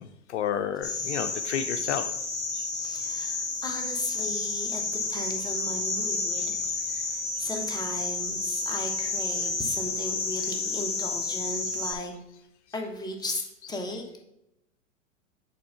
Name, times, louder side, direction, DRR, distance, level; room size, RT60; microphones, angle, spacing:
voice 1, 0.0-2.0 2.5-2.6 6.3-6.5 13.9-14.0, left 9 dB, 60° left, 8 dB, 0.6 m, -31 dB
sound 1, 0.8-11.9, left 3 dB, 30° left, 2.7 m, -31 dB
voice 2, 2.8-6.6 6.9-12.2 12.7-13.4 13.7-14.2, left 1 dB, 10° left, 2 dB, 1.2 m, -36 dB
7.6 x 3.2 x 5.6 m, 0.81 s
hypercardioid pair, 105°, 39 cm